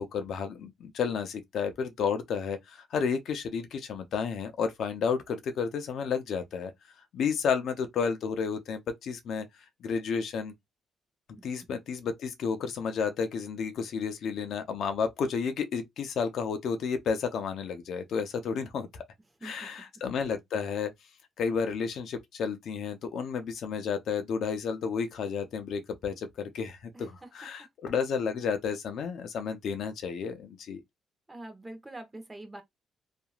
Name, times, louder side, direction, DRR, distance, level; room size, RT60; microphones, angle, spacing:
voice 1, 0.0-6.7 7.1-9.5 9.8-10.5 11.4-19.0 19.4-20.9 21.4-30.8, left 6 dB, 70° left, 0.6 m, -31 dB
voice 2, 19.4-19.8 26.9-27.3 31.3-32.6, right 1 dB, 15° right, 0.9 m, -45 dB
2.9 x 2.5 x 2.4 m
cardioid pair, 90°, 0 cm